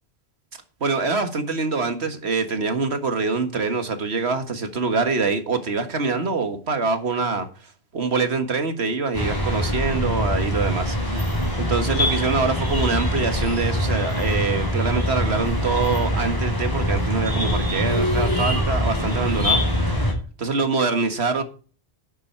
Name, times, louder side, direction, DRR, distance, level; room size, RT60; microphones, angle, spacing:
voice 1, 0.8-7.5 7.9-19.6 20.4-21.4, right 4 dB, 75° right, 1.9 m, -24 dB
sound 1, 9.1-20.1, equal, 20° left, 4.2 m, -23 dB
11.0 x 8.8 x 4.6 m
omnidirectional pair, 1.1 m